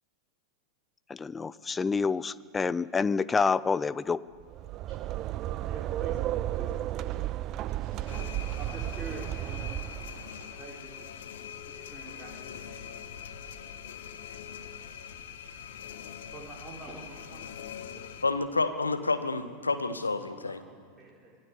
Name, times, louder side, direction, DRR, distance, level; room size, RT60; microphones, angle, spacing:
voice 1, 1.1-4.2, left 5 dB, 15° left, 18 dB, 0.5 m, -28 dB
sound 1, 4.4-10.4, right 14 dB, 35° right, 0.5 m, -33 dB
voice 2, 5.6-6.2 6.5-7.2 7.7-9.8 10.6-11.1 11.6-12.9 16.3-17.5 17.9-18.1 20.2-21.4, right 2 dB, 10° right, -5 dB, 4.0 m, -47 dB
sound 2, 8.1-18.2, left 8 dB, 60° left, 1.5 m, -43 dB
voice 3, 18.2-20.6, left 3 dB, 80° left, 9 dB, 1.5 m, -29 dB
25.5 x 17.5 x 8.3 m, 2.3 s
figure-of-eight pair, 90°, 0 cm